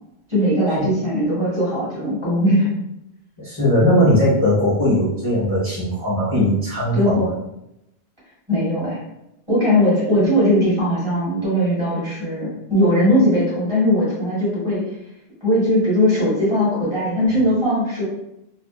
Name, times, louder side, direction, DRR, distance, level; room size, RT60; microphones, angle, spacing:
voice 1, 0.3-2.7 6.9-7.3 8.5-9.0 9.5-14.8 15.4-18.0, equal, 30° right, -10 dB, 1.4 m, -19 dB
voice 2, 3.4-7.3, equal, 20° left, -11 dB, 1.0 m, -19 dB
2.6 x 2.4 x 2.3 m, 0.84 s
omnidirectional pair, 1.1 m